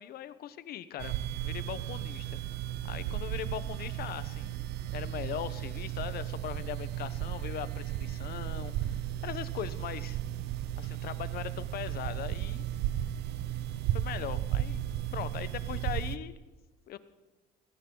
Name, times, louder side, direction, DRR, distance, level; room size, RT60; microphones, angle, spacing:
voice 1, 0.0-2.4 2.8-4.5 4.9-10.2 10.8-12.6 13.9-14.8 15.1-16.3 16.9-17.0, left 11 dB, 65° left, 14 dB, 1.0 m, -40 dB
sound 1, 1.0-16.2, right 12 dB, 80° right, 0.8 m, -35 dB
20.0 x 17.0 x 3.9 m, 1.2 s
cardioid pair, 110°, 17 cm